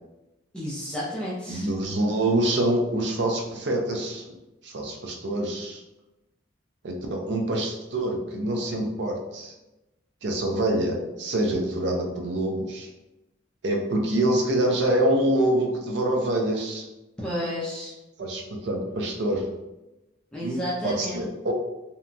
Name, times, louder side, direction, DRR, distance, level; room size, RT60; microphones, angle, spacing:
voice 1, 0.5-1.7 17.2-17.9 20.3-21.2, equal, 5° left, -8 dB, 0.4 m, -31 dB
voice 2, 1.5-4.2 4.6-5.8 6.8-9.5 10.2-12.9 13.6-16.8 18.2-19.4 20.4-20.6 20.8-21.5, right 1 dB, 65° right, 1 dB, 0.5 m, -25 dB
2.8 x 2.2 x 2.5 m, 1.0 s
head